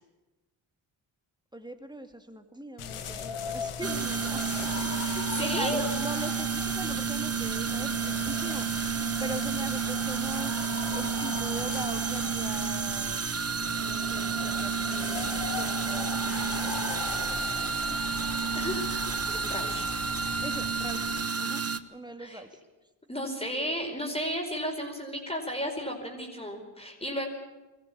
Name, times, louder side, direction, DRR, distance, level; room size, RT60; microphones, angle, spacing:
voice 1, 1.5-13.2 13.8-17.5 19.3-19.8 20.4-21.6 21.9-22.6, right 1 dB, 10° right, 6 dB, 2.3 m, -42 dB
sound 1, 2.8-21.3, left 6 dB, 80° left, 1.6 m, -39 dB
sound 2, 3.8-21.8, right 6 dB, 30° right, 0.9 m, -30 dB
voice 2, 5.2-5.8 18.5-19.8 22.2-22.4 23.1-27.3, equal, 10° left, 1 dB, 4.8 m, -34 dB
sound 3, 16.2-21.3, left 3 dB, 50° left, 3.7 m, -46 dB
21.0 x 15.0 x 8.7 m, 1.1 s
cardioid pair, 55°, 50 cm